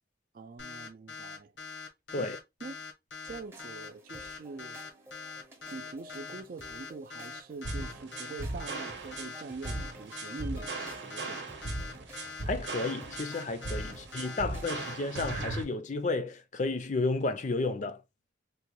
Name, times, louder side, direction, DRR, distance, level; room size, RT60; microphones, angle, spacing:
voice 1, 0.3-1.5 2.1-2.3 2.6-2.8 3.2-4.8 5.7-11.5 13.9-14.0 14.6-14.7, right 4 dB, 50° right, 0.4 m, -44 dB
sound 1, 0.6-15.4, left 5 dB, 90° left, 0.9 m, -43 dB
sound 2, 3.3-15.4, right 1 dB, 15° right, 0.6 m, -52 dB
sound 3, 7.6-15.6, right 2 dB, 70° right, 0.7 m, -38 dB
voice 2, 12.5-18.0, left 3 dB, 40° left, 0.4 m, -32 dB
3.7 x 2.2 x 2.9 m
head